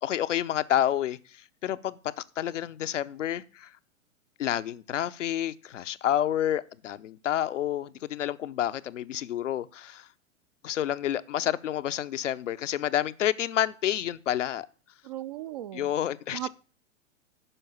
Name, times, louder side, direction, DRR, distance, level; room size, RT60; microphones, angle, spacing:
voice 1, 0.0-3.7 4.4-10.1 10.6-14.7 15.7-16.5, left 11 dB, 65° left, 0.8 m, -29 dB
voice 2, 15.0-15.9 16.3-16.5, right 13 dB, 35° right, 0.4 m, -36 dB
11.0 x 5.3 x 7.1 m
figure-of-eight pair, 110°, 40 cm